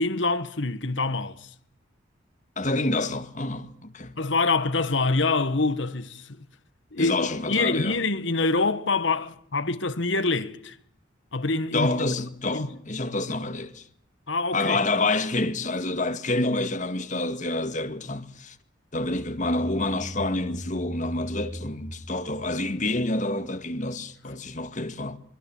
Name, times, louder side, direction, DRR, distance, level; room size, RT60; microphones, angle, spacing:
voice 1, 0.0-1.5 4.2-6.5 6.9-10.7 11.3-11.9 12.5-12.7 14.3-14.8, left 3 dB, 75° left, 1.6 m, -25 dB
voice 2, 2.6-4.1 7.0-8.0 11.7-13.8 14.5-18.6 18.9-25.2, left 2 dB, 40° left, 2.0 m, -28 dB
sound 1, 19.1-23.6, equal, 10° left, 7.1 m, -39 dB
24.5 x 23.0 x 7.4 m
head